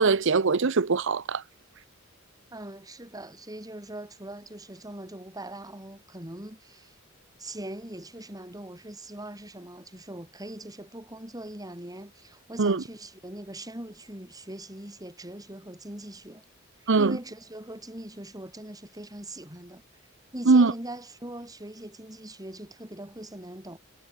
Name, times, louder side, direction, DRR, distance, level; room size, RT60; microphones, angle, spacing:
voice 1, 0.0-1.4 12.6-12.8 16.9-17.2 20.5-20.7, right 4 dB, 65° right, 0.7 m, -21 dB
voice 2, 2.5-7.0 7.4-16.4 16.8-19.8 20.3-23.8, right 1 dB, 20° right, 5.6 m, -41 dB
head